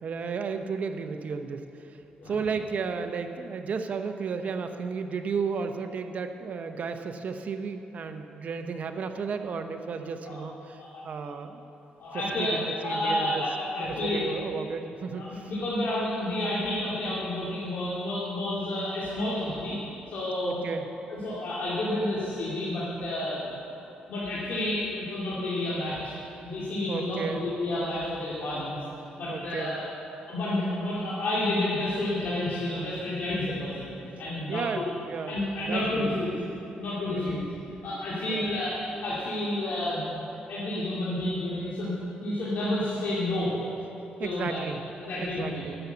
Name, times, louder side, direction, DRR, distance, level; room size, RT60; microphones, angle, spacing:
voice 1, 0.0-2.0 2.3-11.6 12.1-13.4 13.8-15.4 20.4-20.9 26.9-27.5 29.3-29.8 34.5-36.1 37.0-37.4 38.3-38.5 44.2-44.8 45.2-45.7, right 5 dB, 55° right, 7 dB, 0.9 m, -33 dB
voice 2, 12.0-14.2 15.2-19.8 20.1-20.6 21.1-23.5 24.1-28.8 29.2-29.8 30.3-33.9 34.2-34.8 35.3-36.3 36.8-37.5 37.8-43.5 44.2-44.6 45.0-45.6, left 1 dB, 70° left, -8 dB, 2.5 m, -30 dB
11.0 x 7.1 x 8.0 m, 3.0 s
cardioid pair, 90°, 3 cm